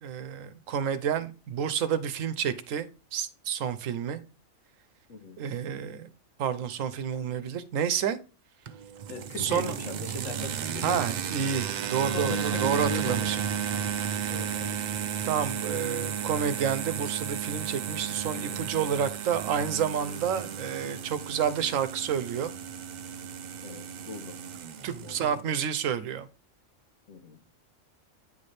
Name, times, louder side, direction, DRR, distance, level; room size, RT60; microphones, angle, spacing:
voice 1, 0.0-4.2 5.4-6.1 6.4-8.2 9.4-9.7 10.8-13.4 15.2-22.5 24.8-26.3, right 8 dB, 90° right, 1.0 m, -29 dB
voice 2, 5.1-5.4 9.1-11.0 12.1-13.4 14.3-14.8 18.3-18.7 23.6-24.4 25.0-25.4 27.1-27.4, left 4 dB, 80° left, 1.3 m, -40 dB
sound 1, 8.7-25.4, right 8 dB, 75° right, 0.4 m, -33 dB
9.0 x 3.3 x 4.1 m
omnidirectional pair, 1.3 m